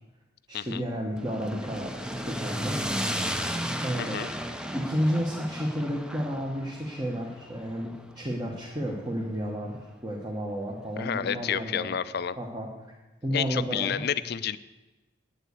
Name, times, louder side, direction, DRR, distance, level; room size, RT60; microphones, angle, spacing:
voice 1, 0.5-1.9 2.2-2.8 3.8-4.2 4.7-11.9 12.4-12.7 13.2-14.0, equal, 20° right, -2 dB, 1.2 m, -31 dB
sound 1, 1.2-9.4, equal, 5° right, 0.6 m, -34 dB
voice 2, 4.0-4.3 11.0-12.4 13.3-14.6, left 8 dB, 50° left, 15 dB, 0.4 m, -30 dB
9.4 x 7.8 x 8.2 m, 1.1 s
head